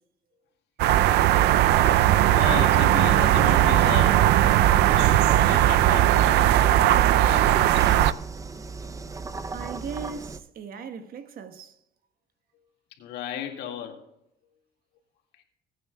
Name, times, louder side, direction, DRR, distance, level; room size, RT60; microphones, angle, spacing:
sound 1, 0.8-8.1, right 13 dB, 80° right, 0.4 m, -19 dB
Engine, 1.6-10.4, right 3 dB, 20° right, 0.6 m, -36 dB
voice 1, 2.2-4.3 4.8-6.6 7.2-8.1 12.5-12.6 12.9-14.0 15.3-15.4, left 9 dB, 80° left, 2.0 m, -36 dB
voice 2, 9.5-11.7, right 6 dB, 60° right, 1.2 m, -38 dB
19.5 x 9.2 x 2.3 m
cardioid pair, 110°, 17 cm